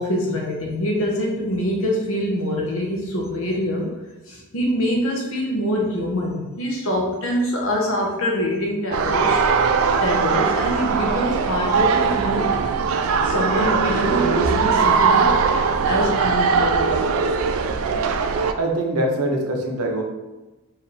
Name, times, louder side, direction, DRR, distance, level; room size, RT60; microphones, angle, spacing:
voice 1, 0.0-4.0 4.3-9.4 10.0-12.5 13.2-15.4 15.8-17.1, equal, 60° left, -1 dB, 1.0 m, -24 dB
sound 1, 8.9-18.5, right 5 dB, 65° right, 0.3 m, -20 dB
voice 2, 18.6-20.0, right 1 dB, 90° right, 1 dB, 0.8 m, -23 dB
4.8 x 2.9 x 3.3 m, 1.1 s
head